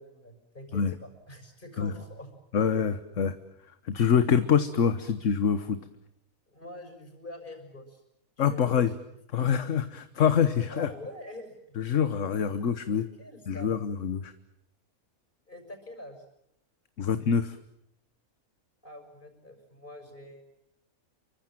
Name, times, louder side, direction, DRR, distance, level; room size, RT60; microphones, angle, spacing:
voice 1, 0.0-2.3 6.5-8.0 8.4-9.1 10.7-11.7 12.4-12.5 12.9-13.7 15.5-16.2 18.8-20.4, left 1 dB, 35° left, 7 dB, 6.5 m, -45 dB
voice 2, 2.5-3.3 3.8-5.8 8.4-8.9 9.3-10.9 11.8-13.0 13.5-14.3 17.0-17.6, left 7 dB, 60° left, 11 dB, 1.5 m, -25 dB
29.0 x 24.0 x 7.6 m, 0.78 s
omnidirectional pair, 1.5 m